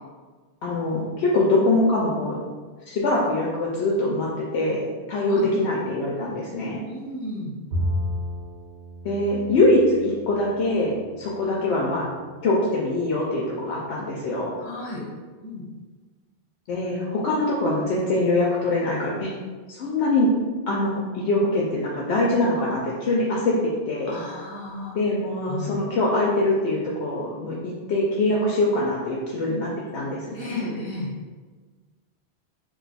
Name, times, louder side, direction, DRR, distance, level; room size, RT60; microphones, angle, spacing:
voice 1, 0.6-2.4 2.9-6.8 9.0-12.1 12.4-14.5 16.7-19.3 19.7-20.3 20.7-24.2 24.9-30.6, left 2 dB, 80° left, -4 dB, 0.8 m, -23 dB
voice 2, 6.8-7.5 14.6-15.0 15.4-15.6 24.1-25.0 25.5-25.7 30.3-31.1, left 1 dB, 65° left, -5 dB, 1.1 m, -33 dB
Bowed string instrument, 7.7-11.1, left 1 dB, 85° right, 1.0 m, -31 dB
2.5 x 2.3 x 3.9 m, 1.4 s
omnidirectional pair, 1.1 m